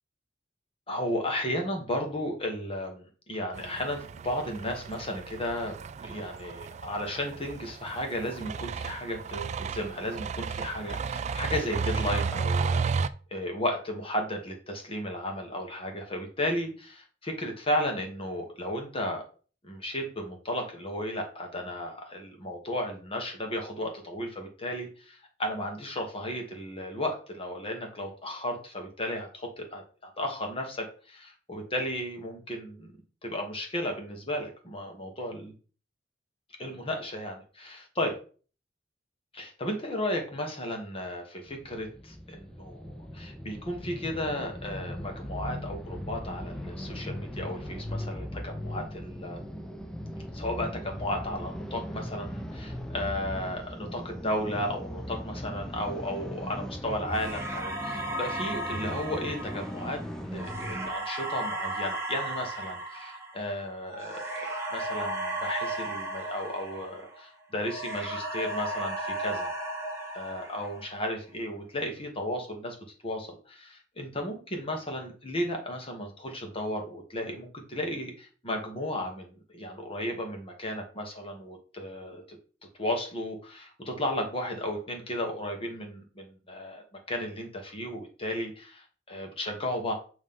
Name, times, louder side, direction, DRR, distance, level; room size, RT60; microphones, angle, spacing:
voice 1, 0.9-19.2 19.6-32.9 33.2-35.5 36.6-38.2 39.3-49.5 50.3-69.5 70.1-72.8 73.0-82.2 82.8-89.9, left 1 dB, 30° left, 2 dB, 1.4 m, -34 dB
sound 1, 3.5-13.1, right 5 dB, 40° right, 0.3 m, -33 dB
sound 2, 41.5-60.9, equal, 5° left, 0.6 m, -39 dB
sound 3, 57.1-67.3 67.6-71.0, right 1 dB, 15° right, 1.4 m, -35 dB
7.4 x 3.1 x 5.5 m, 0.39 s
head